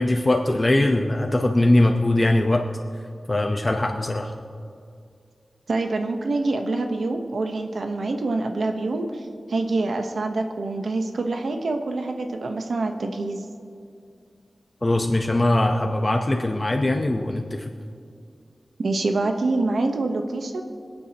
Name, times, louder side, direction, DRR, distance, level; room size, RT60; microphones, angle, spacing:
voice 1, 0.0-2.6 3.3-4.3 14.8-17.7, left 1 dB, 30° left, 3 dB, 0.8 m, -21 dB
voice 2, 5.7-13.4 18.8-20.6, right 2 dB, 90° right, 4 dB, 0.9 m, -26 dB
26.0 x 9.0 x 2.9 m, 2.3 s
wide cardioid pair, 85°, 0 cm